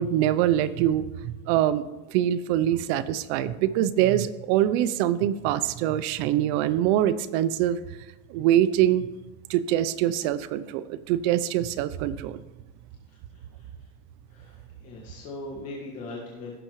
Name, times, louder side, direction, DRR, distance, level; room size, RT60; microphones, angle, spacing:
voice 1, 0.0-1.8 2.1-7.8 8.3-9.1 9.5-12.4, right 12 dB, 65° right, 15 dB, 0.6 m, -24 dB
voice 2, 13.1-13.9 14.3-16.6, left 2 dB, 45° left, -3 dB, 1.9 m, -41 dB
16.0 x 6.6 x 3.1 m, 1.1 s
cardioid pair, 155°, 35 cm